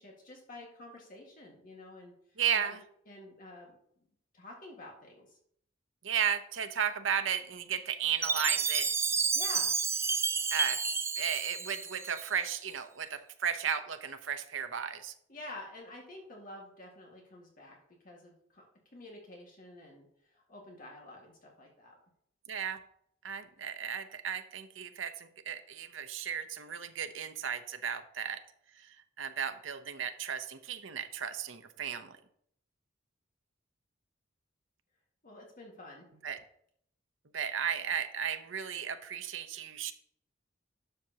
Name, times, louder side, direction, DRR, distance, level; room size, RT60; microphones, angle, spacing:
voice 1, 0.0-2.1 2.6-2.8 3.1-3.8 4.3-5.4 9.3-9.7 15.3-17.8 18.0-18.7 18.9-22.0 35.2-36.1, left 2 dB, 45° left, -1 dB, 1.9 m, -49 dB
voice 2, 2.4-2.8 6.0-8.9 10.5-10.8 11.2-15.1 22.5-22.8 23.2-28.4 29.2-32.1 36.2-36.4 37.3-39.9, right 8 dB, 85° right, 9 dB, 0.8 m, -34 dB
Chime, 8.2-12.5, right 5 dB, 15° right, 0.4 m, -31 dB
12.0 x 6.6 x 2.9 m, 0.68 s
head